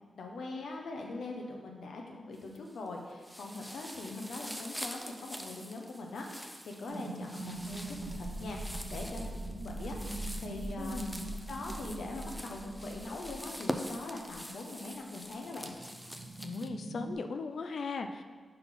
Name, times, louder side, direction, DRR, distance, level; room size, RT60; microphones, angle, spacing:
voice 1, 0.2-9.9 10.4-11.0 11.5-15.7, left 2 dB, 85° left, 1 dB, 1.0 m, -42 dB
sound 1, 2.3-2.9 3.2-16.7, equal, ahead, 0.4 m, -45 dB
sound 2, 6.9-17.1, right 2 dB, 50° right, 0.7 m, -42 dB
voice 2, 10.8-11.2 16.4-18.2, left 4 dB, 65° left, 7 dB, 0.4 m, -38 dB
5.5 x 4.0 x 5.8 m, 1.5 s
wide cardioid pair, 150°, 0 cm